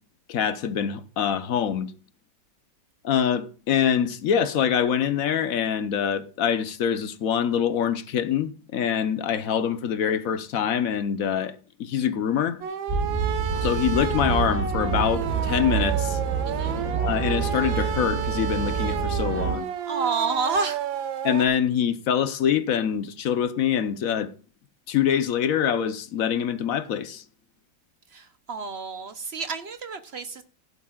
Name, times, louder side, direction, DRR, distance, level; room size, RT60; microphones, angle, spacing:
voice 1, 0.3-1.9 3.0-12.6 13.6-16.2 17.0-19.7 21.2-24.3 24.9-27.2, left 8 dB, 55° left, 1.1 m, -25 dB
sound 1, 12.6-21.5, right 9 dB, 80° right, 1.7 m, -31 dB
sound 2, 12.9-19.5, right 5 dB, 20° right, 4.1 m, -27 dB
voice 2, 19.9-20.8 28.1-30.4, right 4 dB, 60° right, 0.6 m, -29 dB
16.0 x 11.0 x 2.4 m
omnidirectional pair, 2.0 m